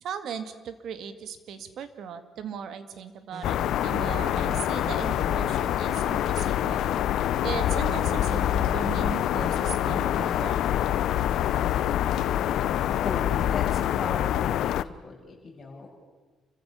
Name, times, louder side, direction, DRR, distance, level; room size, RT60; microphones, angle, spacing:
voice 1, 0.0-6.9 7.4-10.6, right 7 dB, 65° right, 10 dB, 1.9 m, -37 dB
sound 1, 3.3-13.6, right 2 dB, 25° right, 2.3 m, -43 dB
sound 2, 3.4-14.8, left 12 dB, 75° left, 0.6 m, -26 dB
voice 2, 13.0-14.8 15.0-16.0, left 4 dB, 30° left, -2 dB, 6.9 m, -37 dB
28.5 x 15.0 x 6.9 m, 1.3 s
cardioid pair, 115°, 0 cm